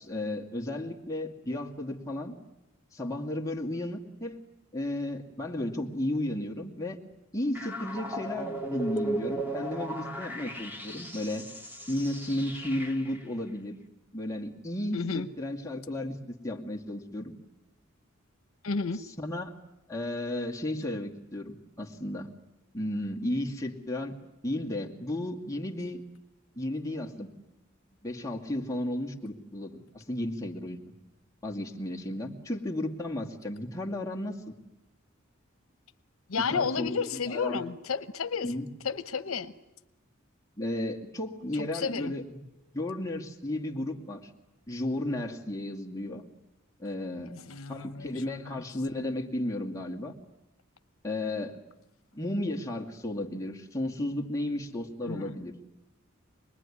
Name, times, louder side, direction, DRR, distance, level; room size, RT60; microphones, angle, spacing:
voice 1, 0.0-2.3 2.9-4.4 4.7-7.0 7.3-11.4 11.9-13.8 14.1-16.2 16.4-17.3 19.2-19.5 19.9-22.3 22.7-24.1 24.4-26.0 26.6-27.3 28.0-30.8 31.4-34.5 36.5-37.6 38.4-38.7 40.6-42.4 42.7-44.3 44.7-46.2 46.8-47.3 47.7-50.1 51.0-51.6 52.1-55.5, left 1 dB, 15° left, 0 dB, 2.3 m, -33 dB
sound 1, 7.5-13.2, right 1 dB, 10° right, 2.7 m, -36 dB
voice 2, 14.9-15.3 18.6-19.0 36.3-38.5 38.8-39.5 41.6-42.1 47.2-48.6 55.0-55.4, left 5 dB, 85° left, 11 dB, 1.0 m, -32 dB
26.0 x 20.5 x 10.0 m, 0.94 s
head